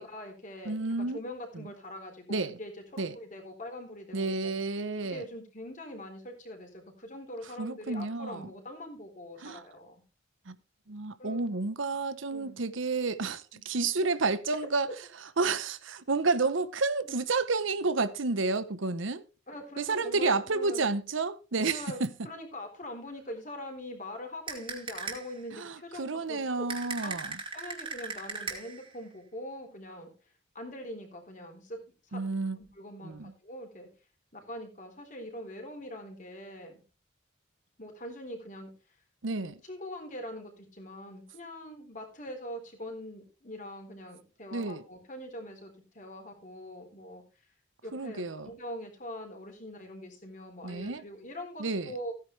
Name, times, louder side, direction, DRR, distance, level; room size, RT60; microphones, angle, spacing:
voice 1, 0.0-4.5 5.0-10.0 11.2-11.4 12.3-12.6 13.5-13.6 14.5-14.6 17.1-17.2 19.5-20.9 21.7-26.7 27.0-27.1 27.5-30.1 30.5-33.9 34.3-36.8 37.8-39.0 39.4-47.2 47.8-52.1, left 1 dB, 40° left, 3.9 m, -43 dB
voice 2, 0.7-1.2 1.5-1.6 2.3-2.6 3.0-3.2 4.1-5.2 7.6-8.5 9.4-9.6 10.5-10.6 10.9-14.9 15.4-19.2 19.8-22.1 25.5-27.4 32.1-32.6 33.0-33.3 39.2-39.6 44.5-44.8 47.9-48.5 50.6-51.0 51.6-51.9, right 3 dB, 80° right, 0.9 m, -30 dB
sound 1, 24.5-25.4 26.7-28.9, right 4 dB, 25° right, 3.0 m, -38 dB
16.0 x 9.6 x 3.3 m
head